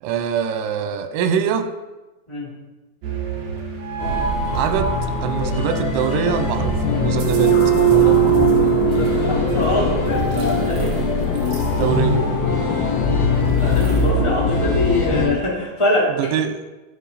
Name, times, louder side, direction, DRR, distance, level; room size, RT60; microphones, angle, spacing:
voice 1, 0.0-1.7 4.5-5.0 5.2-7.5 7.8-8.5 11.7-12.3 16.2-16.7, right 8 dB, 85° right, 8 dB, 3.3 m, -23 dB
sound 1, 3.0-14.1, right 11 dB, 60° right, 2.1 m, -24 dB
sound 2, 4.0-15.2, left 1 dB, 40° left, 4.9 m, -24 dB
sound 3, 6.8-15.4, left 8 dB, 75° left, 2.4 m, -24 dB
voice 2, 8.8-10.9 13.6-16.1, left 1 dB, 5° left, -7 dB, 3.0 m, -24 dB
13.0 x 7.9 x 4.2 m, 1.1 s
omnidirectional pair, 5.3 m